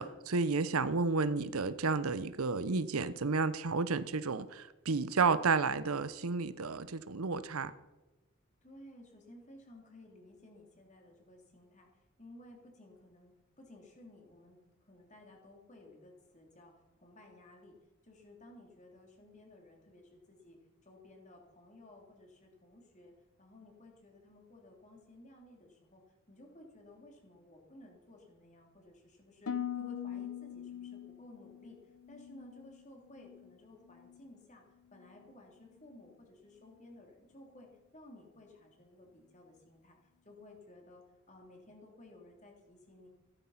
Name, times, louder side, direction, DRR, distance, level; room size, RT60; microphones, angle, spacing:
voice 1, 0.0-7.7, right 4 dB, 80° right, 0.8 m, -31 dB
voice 2, 8.6-17.8 18.0-23.1 23.4-26.0 26.3-40.0 40.2-43.1, left 1 dB, 35° left, 3.4 m, -56 dB
Harp, 29.5-33.6 33.9-34.4 34.9-35.2, left 9 dB, 80° left, 0.7 m, -43 dB
15.0 x 13.0 x 5.8 m
head